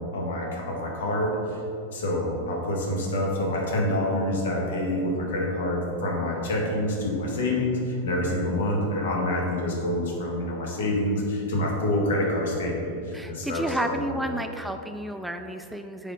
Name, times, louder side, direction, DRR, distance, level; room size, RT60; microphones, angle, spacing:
voice 1, 0.0-1.6 1.9-14.3, left 1 dB, 65° left, -1 dB, 1.6 m, -27 dB
voice 2, 13.1-16.1, right 1 dB, 5° right, 6 dB, 0.4 m, -31 dB
8.1 x 4.1 x 5.2 m, 2.7 s
figure-of-eight pair, 95°, 0 cm